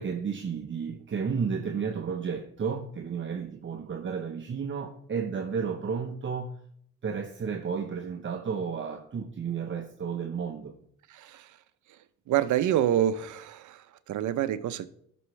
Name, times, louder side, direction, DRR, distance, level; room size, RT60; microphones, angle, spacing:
voice 1, 0.0-6.6 7.0-10.7, right 6 dB, 40° right, 2 dB, 1.1 m, -32 dB
voice 2, 11.1-11.6 11.9-12.0 12.3-14.9, right 11 dB, 75° right, 13 dB, 0.8 m, -27 dB
16.5 x 6.3 x 3.3 m, 0.67 s
cardioid pair, 90°, 30 cm